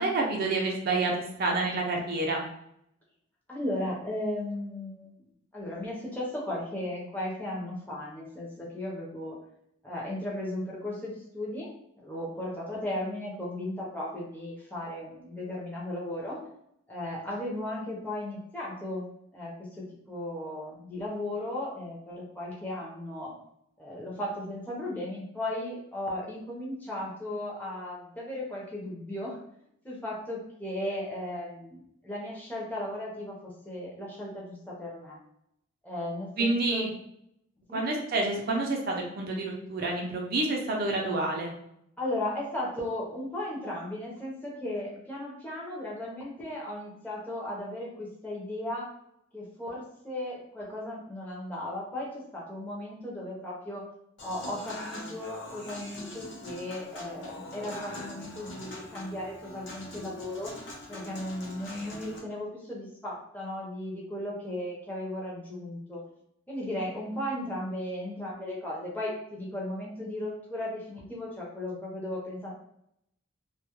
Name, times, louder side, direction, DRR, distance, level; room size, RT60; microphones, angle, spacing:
voice 1, 0.0-2.4 36.4-36.9 37.7-41.5, right 2 dB, 50° right, 0 dB, 0.4 m, -28 dB
voice 2, 3.5-5.1 5.5-9.4 9.8-11.7 12.0-16.4 16.9-19.0 19.3-19.5 20.1-23.3 23.8-29.4 29.8-33.3 33.6-35.2 35.8-36.8 37.7-37.8 42.0-48.9 49.3-53.8 54.2-60.5 60.9-66.0 66.5-72.5, left 1 dB, 10° left, -5 dB, 0.6 m, -36 dB
Human voice / Acoustic guitar / Piano, 54.2-62.2, left 1 dB, 60° left, 0.6 m, -43 dB
2.2 x 2.0 x 2.9 m, 0.74 s
head